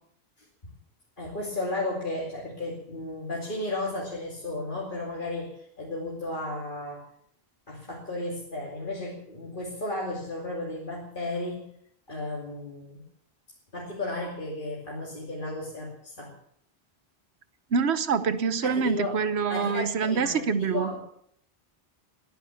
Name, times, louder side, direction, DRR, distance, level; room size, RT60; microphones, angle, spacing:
voice 1, 1.2-7.1 7.7-11.7 12.1-13.0 13.7-16.3 18.6-19.2 19.5-21.0, left 2 dB, 50° left, -3 dB, 2.8 m, -34 dB
voice 2, 17.7-20.9, right 5 dB, 85° right, 13 dB, 1.2 m, -25 dB
20.0 x 10.0 x 7.0 m, 0.69 s
omnidirectional pair, 1.1 m